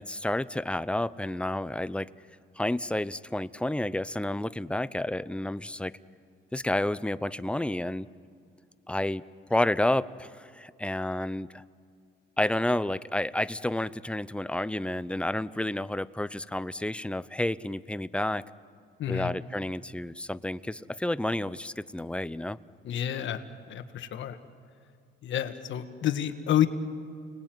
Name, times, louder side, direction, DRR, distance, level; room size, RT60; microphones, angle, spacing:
voice 1, 0.0-2.1 2.6-5.9 6.5-8.1 8.9-9.2 9.5-11.6 12.4-18.4 19.1-22.6, left 1 dB, 5° left, 16 dB, 0.7 m, -30 dB
voice 2, 19.0-19.3 22.8-23.4 23.7-24.4 25.2-26.7, left 11 dB, 70° left, 8 dB, 1.6 m, -29 dB
29.0 x 20.5 x 9.3 m, 2.3 s
cardioid pair, 90°, 20 cm